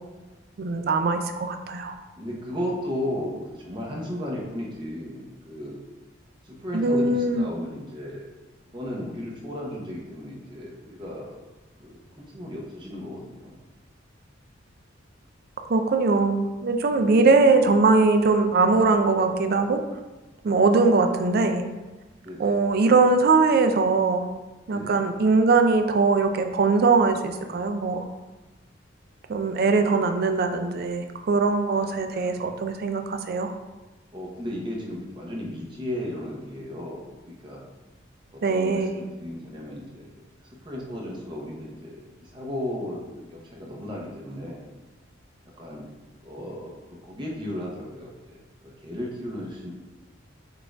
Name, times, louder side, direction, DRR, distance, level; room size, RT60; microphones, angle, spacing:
voice 1, 0.6-2.0 6.7-7.4 15.7-19.8 20.4-21.6 22.4-24.3 24.7-28.0 29.3-33.5 38.4-38.9, right 3 dB, 50° right, 6 dB, 0.4 m, -21 dB
voice 2, 2.2-5.8 6.4-8.3 8.7-11.4 11.8-13.6 17.1-17.4 22.2-22.6 24.7-24.9 29.7-30.0 31.7-31.9 32.1-32.5 34.1-37.6 38.3-40.1 40.6-44.7 45.6-45.9 46.2-49.7, left 1 dB, 25° right, -3 dB, 0.8 m, -35 dB
5.8 x 2.5 x 3.4 m, 1.2 s
head